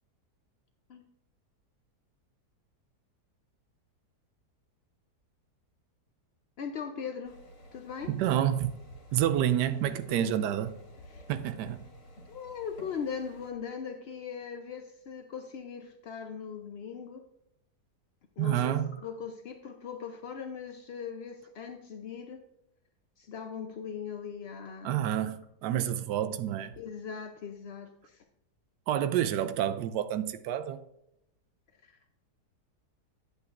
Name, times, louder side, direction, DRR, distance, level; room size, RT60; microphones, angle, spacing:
voice 1, 6.6-7.4 7.7-8.1 10.1-10.3 11.1-11.2 12.3-17.3 18.4-22.4 23.2-25.0 26.8-28.2 31.8-32.1, left 7 dB, 65° left, 0.6 m, -40 dB
sound 1, 7.2-13.5, equal, 90° left, 2.9 m, -51 dB
voice 2, 8.1-8.8 9.1-10.7 11.3-11.8 18.4-18.9 24.8-26.8 28.9-30.8, right 11 dB, 85° right, 1.2 m, -29 dB
11.5 x 8.2 x 2.5 m
omnidirectional pair, 1.8 m